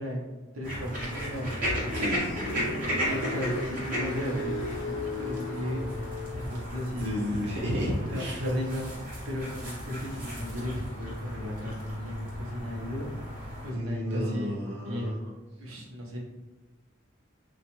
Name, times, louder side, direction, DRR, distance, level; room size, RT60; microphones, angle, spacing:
voice 1, 0.0-1.5 2.1-5.9 6.5-7.1 8.0-8.8 9.2-13.1 13.6-14.5 14.9-15.2 15.6-16.2, equal, 85° right, -1 dB, 0.8 m, -35 dB
sound 1, 0.6-13.7, equal, 40° right, 0.9 m, -35 dB
Car, 1.3-6.7, left 2 dB, 65° left, 0.5 m, -36 dB
voice 2, 1.9-2.5 7.0-8.4 13.7-15.2, equal, 60° right, -4 dB, 0.5 m, -32 dB
2.9 x 2.4 x 2.9 m, 1.2 s
head